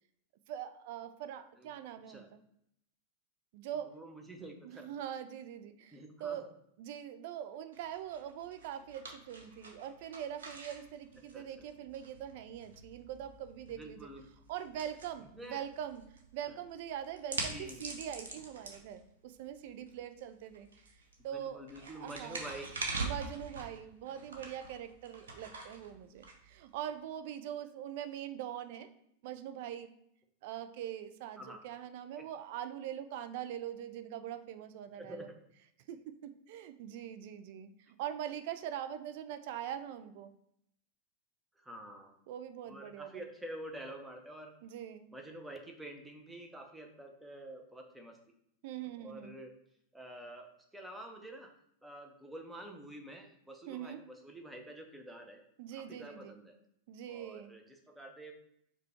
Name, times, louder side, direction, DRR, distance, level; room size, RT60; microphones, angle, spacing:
voice 1, 0.5-2.4 3.5-4.0 4.6-6.5 6.8-14.1 14.5-16.0 16.3-20.7 21.2-22.4 23.0-28.9 29.2-29.9 30.4-35.3 35.9-40.3 42.3-43.1 44.6-45.1 48.6-49.4 53.7-54.0 55.6-56.3 56.9-57.5, right 10 dB, 50° right, 10 dB, 0.4 m, -43 dB
voice 2, 3.8-4.9 5.9-6.4 11.3-11.7 13.8-14.3 15.3-15.6 16.5-16.6 17.5-17.8 21.3-22.7 31.4-31.6 32.2-32.3 34.9-35.4 41.6-42.2 42.7-44.5 45.1-48.2 49.0-49.6 49.9-51.5 51.8-55.4 55.7-56.6 57.1-58.3, right 1 dB, 5° right, 3 dB, 0.7 m, -48 dB
sound 1, 7.7-27.0, right 3 dB, 65° right, 0.7 m, -45 dB
4.9 x 2.3 x 4.3 m, 0.74 s
figure-of-eight pair, 90°, 0 cm